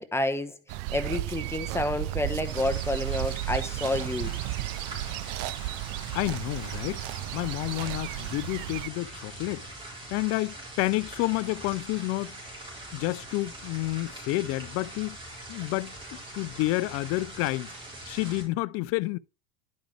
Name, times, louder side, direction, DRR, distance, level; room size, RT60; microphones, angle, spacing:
voice 1, 0.0-4.3, left 2 dB, 10° left, 0.9 m, -30 dB
sound 1, 0.7-8.9, right 17 dB, 55° right, 0.5 m, -34 dB
sound 2, 2.4-18.4, right 1 dB, 15° right, 3.7 m, -43 dB
voice 2, 6.1-7.0 7.3-9.7 10.1-12.3 12.9-15.2 15.5-17.7 18.1-19.2, left 20 dB, 50° left, 0.5 m, -29 dB
10.5 x 5.2 x 3.3 m
hypercardioid pair, 95°, 30 cm